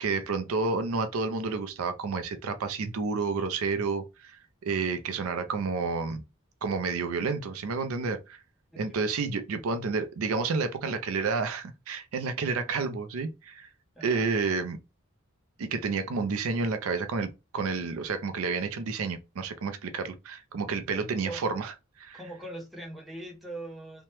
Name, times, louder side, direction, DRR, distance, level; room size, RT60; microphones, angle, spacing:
voice 1, 0.0-6.2 6.6-8.4 8.8-13.7 14.0-14.8 15.6-21.7 22.0-22.2, right 4 dB, 80° right, 0.4 m, -30 dB
voice 2, 22.1-24.0, right 1 dB, ahead, 0.7 m, -41 dB
2.9 x 2.2 x 3.0 m
head